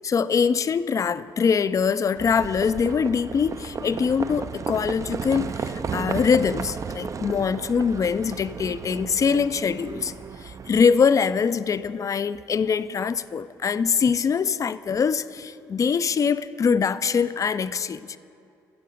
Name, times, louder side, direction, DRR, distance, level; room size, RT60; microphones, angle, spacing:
voice 1, 0.0-10.1 10.4-18.2, left 6 dB, 40° left, 0.4 m, -23 dB
Livestock farm animals working animals, 2.2-10.8, right 6 dB, 40° right, 0.4 m, -34 dB
14.5 x 7.4 x 5.2 m
supercardioid pair, 55°, 8 cm